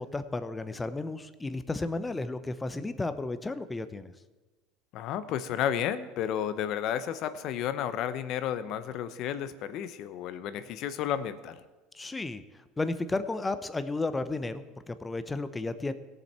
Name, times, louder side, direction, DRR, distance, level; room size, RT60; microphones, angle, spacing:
voice 1, 0.0-4.1 11.9-15.9, left 2 dB, 15° left, 11 dB, 0.7 m, -33 dB
voice 2, 4.9-11.6, left 9 dB, 60° left, 13 dB, 0.8 m, -32 dB
17.5 x 6.8 x 4.3 m, 1.2 s
supercardioid pair, 110°, 0 cm